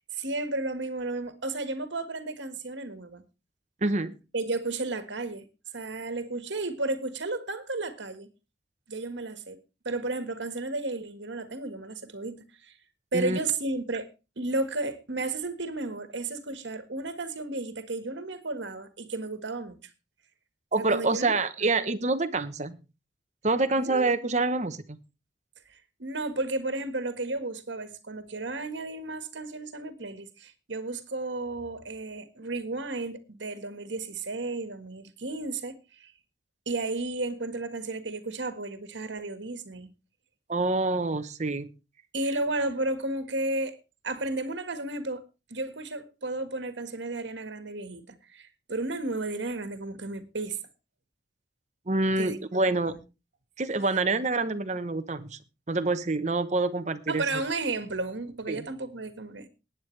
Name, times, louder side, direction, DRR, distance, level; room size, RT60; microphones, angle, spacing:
voice 1, 0.1-3.2 4.3-5.4 5.7-8.3 8.9-9.6 9.8-12.7 13.1-14.1 14.4-19.8 20.8-21.4 21.6-21.7 23.8-24.1 25.7-36.1 36.6-39.9 42.1-43.8 44.0-45.2 45.5-50.6 52.2-52.4 52.7-53.0 57.1-59.5, right 2 dB, 75° right, 1.6 m, -33 dB
voice 2, 3.8-4.1 13.1-13.4 20.7-22.8 23.4-25.0 40.5-41.7 51.9-53.0 53.6-55.4 55.7-57.2 58.5-58.7, right 3 dB, 40° right, 0.9 m, -26 dB
20.0 x 9.0 x 3.3 m
head